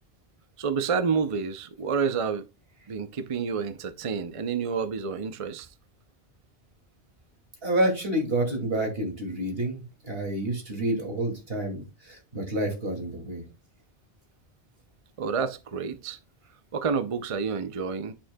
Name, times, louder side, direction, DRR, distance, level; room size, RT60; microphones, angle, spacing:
voice 1, 0.6-2.4 2.9-5.7 15.2-16.2 16.7-18.1, right 5 dB, 40° right, 0.5 m, -29 dB
voice 2, 7.6-13.4, right 1 dB, 65° right, 2.6 m, -29 dB
8.7 x 7.4 x 2.2 m
omnidirectional pair, 1.1 m